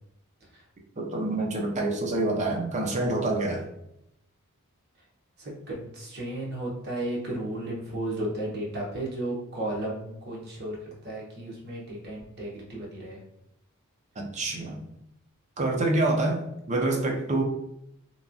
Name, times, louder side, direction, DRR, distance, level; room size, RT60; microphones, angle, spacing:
voice 1, 1.0-3.6 14.2-14.8 15.6-17.4, right 2 dB, 30° right, 1 dB, 0.5 m, -27 dB
voice 2, 5.4-10.8 11.0-13.2, right 1 dB, 50° right, -3 dB, 0.9 m, -34 dB
2.9 x 2.2 x 2.5 m, 0.79 s
head